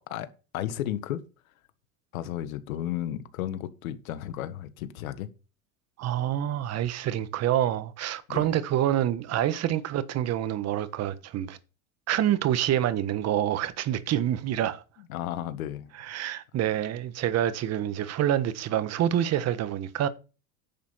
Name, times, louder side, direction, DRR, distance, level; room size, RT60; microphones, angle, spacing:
voice 1, 0.5-1.2 2.1-5.3 8.3-8.5 15.1-15.9, left 12 dB, 80° left, 1.6 m, -33 dB
voice 2, 6.0-11.6 12.1-14.8 16.0-20.1, right 11 dB, 35° right, 1.3 m, -27 dB
10.5 x 7.2 x 5.6 m
supercardioid pair, 120°, 41 cm